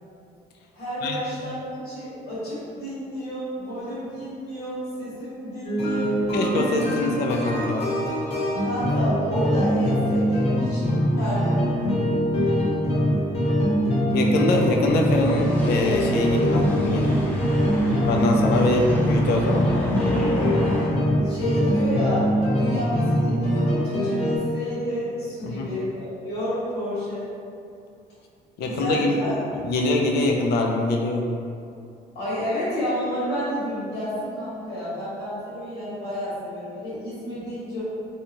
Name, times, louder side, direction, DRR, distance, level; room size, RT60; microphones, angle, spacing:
voice 1, 0.7-6.2 8.6-10.9 11.2-11.6 21.2-27.2 28.6-29.3 32.1-37.8, equal, 90° left, -11 dB, 1.3 m, -30 dB
sound 1, 5.6-24.4, equal, 35° left, 0.8 m, -23 dB
voice 2, 6.3-7.9 14.1-17.2 18.1-19.7 25.4-25.7 28.6-29.1 29.6-31.2, left 2 dB, 70° left, 1 dB, 0.4 m, -23 dB
sound 2, 15.0-20.9, left 1 dB, 10° left, 0.6 m, -30 dB
2.7 x 2.3 x 2.9 m, 2.5 s
cardioid pair, 110°, 17 cm